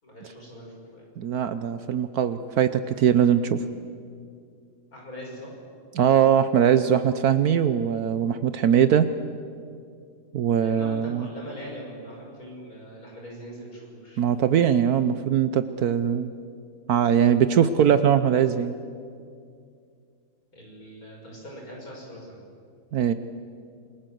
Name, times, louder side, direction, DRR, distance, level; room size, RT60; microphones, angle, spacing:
voice 1, 0.0-1.1 4.9-5.5 10.5-14.2 20.5-22.4, equal, 60° left, -1 dB, 6.8 m, -41 dB
voice 2, 1.2-3.6 5.9-9.1 10.3-11.3 14.2-16.3 16.9-18.7 22.9-23.1, right 9 dB, 70° right, 11 dB, 1.2 m, -21 dB
28.0 x 22.0 x 7.8 m, 2.3 s
omnidirectional pair, 1.8 m